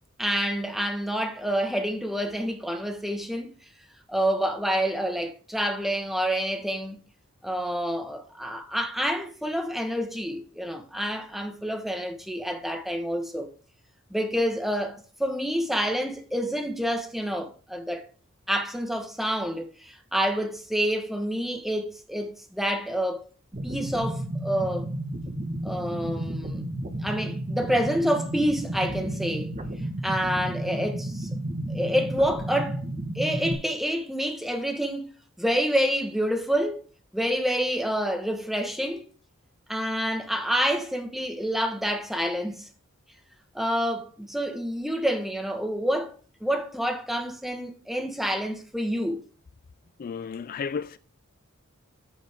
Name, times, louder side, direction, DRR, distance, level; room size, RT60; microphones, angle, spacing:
voice 1, 0.2-3.5 4.1-7.0 7.4-13.5 14.1-18.0 18.5-23.3 23.6-24.9 25.6-26.6 27.0-29.5 30.0-31.3 31.7-32.8 33.1-35.1 35.4-36.8 37.1-39.0 39.7-42.7 43.5-46.1 46.4-49.2, equal, ahead, 1.2 m, -28 dB
sound 1, 23.5-33.5, right 1 dB, 35° right, 1.2 m, -32 dB
voice 2, 50.0-51.0, left 6 dB, 40° left, 0.3 m, -33 dB
13.5 x 5.1 x 3.6 m
head